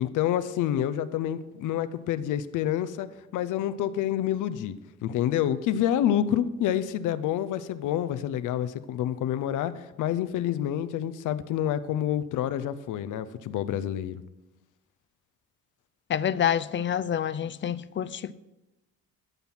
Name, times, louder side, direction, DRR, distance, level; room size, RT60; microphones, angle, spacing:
voice 1, 0.0-4.8 5.0-14.2, left 11 dB, 85° left, 0.7 m, -28 dB
voice 2, 16.1-18.3, left 9 dB, 40° left, 0.5 m, -27 dB
13.0 x 5.6 x 6.1 m
cardioid pair, 90°, 30 cm